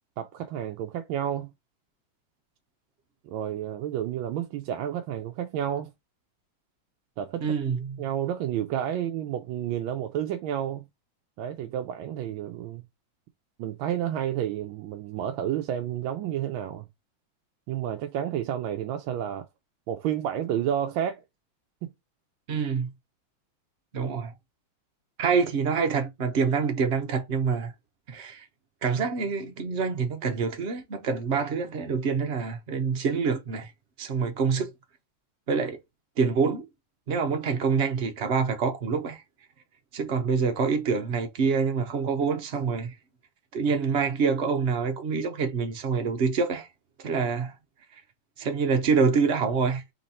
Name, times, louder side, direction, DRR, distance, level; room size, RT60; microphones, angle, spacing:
voice 1, 0.2-1.5 3.2-5.9 7.2-7.5 8.0-10.9 11.4-12.8 13.6-16.9 17.7-19.5 19.9-21.2 21.8-21.9, right 10 dB, 75° right, 1.3 m, -30 dB
voice 2, 7.4-8.0 22.5-22.9 23.9-24.3 25.2-27.7 28.1-28.5 28.8-33.7 34.0-34.7 35.5-35.8 36.2-36.7 37.1-39.2 39.9-42.9 43.5-46.7 47.0-47.5 48.4-49.8, right 5 dB, 60° right, 0.7 m, -26 dB
4.4 x 2.9 x 4.1 m
omnidirectional pair, 2.3 m